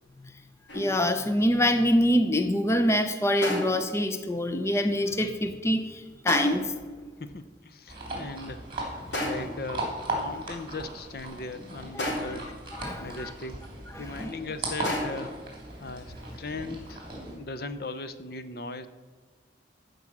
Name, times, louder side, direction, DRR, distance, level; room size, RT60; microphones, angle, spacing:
sound 1, 0.7-1.1 3.4-4.0 6.3-6.8 9.1-9.7 12.0-12.6 14.8-15.4, left 1 dB, 90° left, 3.3 m, -32 dB
voice 1, 0.7-6.7 12.3-12.4 12.7-13.3 13.9-14.3, equal, 15° left, 8 dB, 0.6 m, -25 dB
voice 2, 7.2-8.6 8.9-12.5 13.0-13.6 14.0-15.4 15.8-18.9, left 3 dB, 55° left, 11 dB, 0.7 m, -38 dB
sound 2, 7.9-17.4, right 2 dB, 30° right, 3.0 m, -37 dB
14.5 x 5.3 x 7.4 m, 1.4 s
head